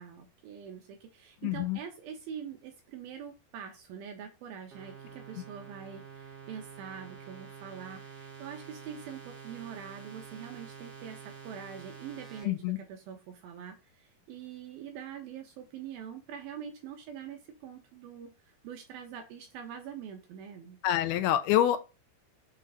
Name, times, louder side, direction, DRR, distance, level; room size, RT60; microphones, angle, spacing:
voice 1, 0.0-20.8, right 8 dB, 75° right, 2.4 m, -44 dB
voice 2, 1.4-1.8 12.4-12.8 20.8-21.8, left 12 dB, 85° left, 2.4 m, -26 dB
sound 1, 4.7-12.4, right 6 dB, 55° right, 1.7 m, -48 dB
6.9 x 3.7 x 5.3 m
omnidirectional pair, 4.9 m